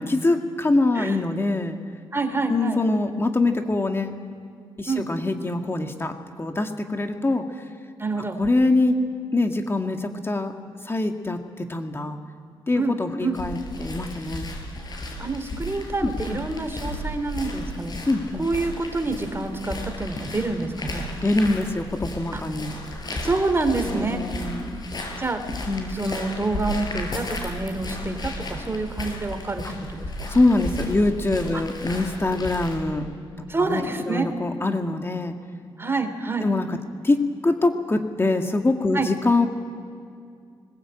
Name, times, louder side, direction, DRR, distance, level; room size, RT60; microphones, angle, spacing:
voice 1, 0.0-1.8 2.5-4.1 4.8-7.6 8.2-9.0 9.3-10.5 10.8-12.2 12.7-14.5 16.0-16.4 18.1-18.5 21.2-22.8 23.8-24.8 25.7-26.2 29.6-29.7 30.3-33.1 33.4-35.4 36.4-36.8 37.0-39.5, left 2 dB, 25° left, 5 dB, 1.8 m, -24 dB
voice 2, 2.1-2.8 4.9-5.0 8.0-8.4 12.7-12.9 13.2-13.4 15.2-17.9 18.4-21.1 22.3-22.4 23.2-24.2 25.2-25.4 25.9-29.7 29.9-30.3 31.5-31.6 33.5-34.3 35.8-36.5 38.9-39.1, right 3 dB, 25° right, 7 dB, 3.0 m, -27 dB
sound 1, 13.3-32.7, left 1 dB, 45° left, 7.2 m, -34 dB
21.0 x 20.0 x 8.9 m, 2.3 s
cardioid pair, 70°, 10 cm